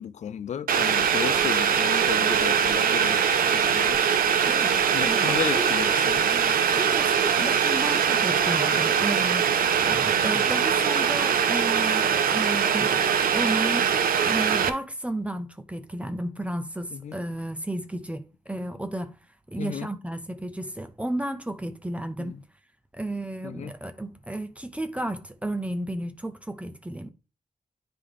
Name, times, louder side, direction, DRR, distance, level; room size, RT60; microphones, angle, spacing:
voice 1, 0.0-4.0 4.9-6.3 10.3-10.7 16.9-17.2 19.6-19.9 22.2-22.3 23.4-23.7, left 8 dB, 55° left, 0.4 m, -34 dB
sound 1, 0.7-9.3, left 5 dB, 70° left, 1.3 m, -45 dB
Boiling, 0.7-14.7, right 7 dB, 80° right, 0.6 m, -22 dB
voice 2, 4.5-4.8 5.0-5.7 6.3-9.5 9.8-13.9 14.3-19.2 19.5-22.4 22.9-27.1, right 1 dB, 10° right, 0.6 m, -33 dB
9.7 x 3.3 x 3.7 m
wide cardioid pair, 130°, 15 cm